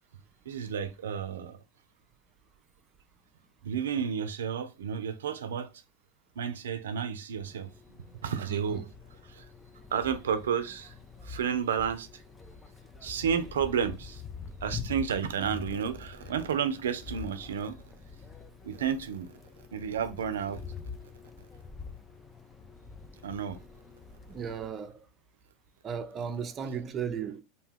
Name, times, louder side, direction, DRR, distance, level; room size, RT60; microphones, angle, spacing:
voice 1, 0.5-1.6 3.6-5.7 6.4-7.7 8.2-9.5 9.9-10.9 11.2-12.1 13.0-14.2 14.6-17.8 18.6-19.3 19.7-20.6 23.2-23.6, right 7 dB, 90° right, 0.4 m, -31 dB
sound 1, 7.4-24.7, left 5 dB, 20° left, 0.5 m, -45 dB
voice 2, 8.5-8.8 24.3-25.1 25.8-27.4, right 7 dB, 35° right, 0.5 m, -36 dB
2.6 x 2.2 x 3.4 m
hypercardioid pair, 100°, 0 cm